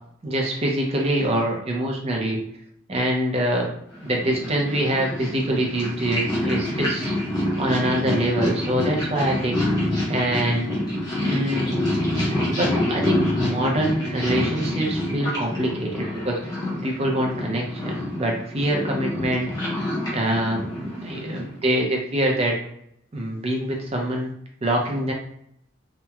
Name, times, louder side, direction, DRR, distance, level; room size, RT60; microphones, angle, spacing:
voice 1, 0.2-2.4 2.9-3.7 4.0-7.1 7.6-9.6 10.1-10.7 11.2-11.9 12.3-16.5 16.8-19.5 20.1-22.6 23.1-24.3 24.6-25.1, right 1 dB, 30° right, 0 dB, 0.5 m, -24 dB
Purr, 3.9-21.6, left 1 dB, 20° left, 0.7 m, -27 dB
2.9 x 2.1 x 2.3 m, 0.73 s
head